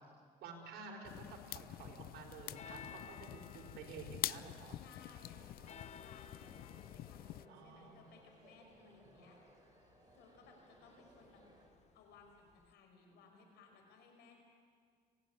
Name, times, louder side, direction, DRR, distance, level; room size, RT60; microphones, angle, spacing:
voice 1, 0.4-4.8 7.5-8.1 8.7-9.2, right 4 dB, 75° right, 2 dB, 4.6 m, -52 dB
sound 1, 1.0-7.5, left 14 dB, 65° left, 0.5 m, -46 dB
sound 2, 2.1-12.7, left 7 dB, 40° left, 0.9 m, -59 dB
sound 3, 2.6-11.7, right 2 dB, 25° right, 4.9 m, -64 dB
voice 2, 4.7-9.4 10.1-11.4 11.9-14.4, left 5 dB, 80° left, 2 dB, 5.7 m, -62 dB
25.0 x 17.5 x 9.3 m, 2.1 s
cardioid pair, 110°, 17 cm